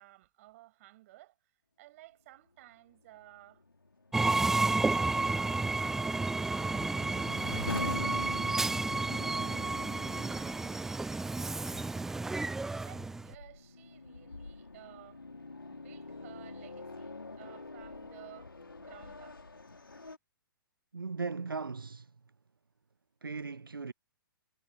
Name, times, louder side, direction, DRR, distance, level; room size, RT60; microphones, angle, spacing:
voice 1, 0.0-1.5 1.8-3.6 4.3-6.2 6.8-11.0 12.7-15.2 15.7-18.5 18.8-19.4, right 17 dB, 40° right, 7.9 m, -56 dB
sound 1, 3.1-20.2, left 3 dB, 80° left, 3.1 m, -45 dB
Train, 4.1-13.3, right 3 dB, 5° right, 0.3 m, -31 dB
voice 2, 20.9-22.1 23.2-23.9, right 4 dB, 80° right, 0.6 m, -38 dB
figure-of-eight pair, 120°, 12 cm